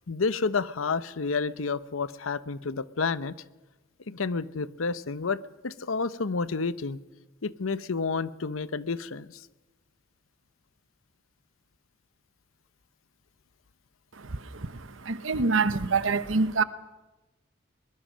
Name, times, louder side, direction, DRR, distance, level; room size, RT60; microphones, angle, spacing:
voice 1, 0.1-3.3 4.1-7.0 7.4-9.3, left 4 dB, 90° left, 0.8 m, -30 dB
voice 2, 14.1-16.6, right 4 dB, 75° right, 1.0 m, -26 dB
23.0 x 21.0 x 6.3 m
head